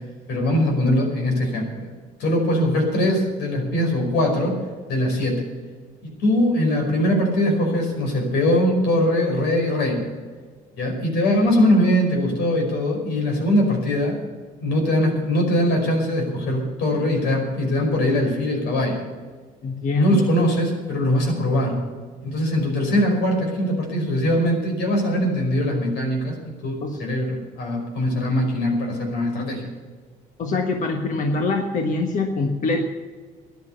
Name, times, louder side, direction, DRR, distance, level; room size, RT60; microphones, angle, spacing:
voice 1, 0.3-1.9 2.2-4.6 4.9-5.5 6.0-10.1 10.8-14.2 14.6-19.0 20.0-21.8 22.2-29.6, left 1 dB, 85° left, 1 dB, 5.3 m, -21 dB
voice 2, 19.6-20.3 26.8-27.0 30.4-32.8, left 3 dB, 50° left, 3 dB, 1.4 m, -23 dB
14.0 x 10.5 x 6.9 m, 1.5 s
cardioid pair, 110°, 17 cm